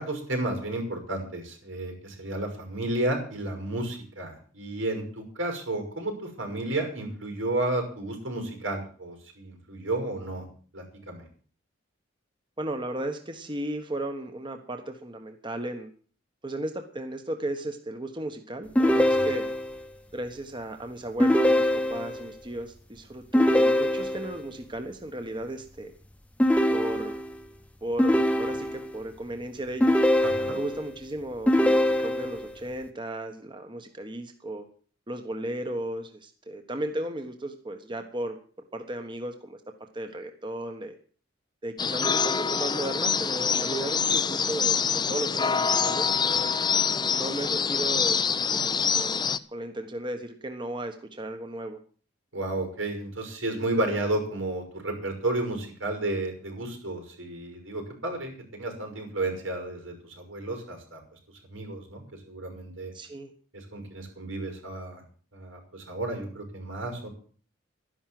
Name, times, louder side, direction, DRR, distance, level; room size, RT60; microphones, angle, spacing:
voice 1, 0.0-10.5 10.7-11.3 19.1-19.3 30.2-30.6 52.3-61.0 61.5-62.9 63.5-65.0 65.3-67.1, right 2 dB, 90° right, 3 dB, 5.9 m, -32 dB
voice 2, 12.6-15.9 16.4-19.5 20.1-25.9 26.7-27.2 27.8-30.0 30.5-34.7 35.1-38.4 38.7-40.9 41.6-46.5 47.2-48.2 48.5-51.8 62.9-63.3, right 1 dB, 25° right, 6 dB, 1.3 m, -35 dB
sound 1, 18.7-19.8 21.2-22.3 23.3-24.4 26.4-27.4 28.0-29.0 29.8-30.8 31.5-32.5, left 1 dB, 5° left, 1.0 m, -23 dB
sound 2, 41.8-49.4, left 6 dB, 20° left, 0.6 m, -25 dB
12.0 x 11.0 x 7.7 m, 0.43 s
head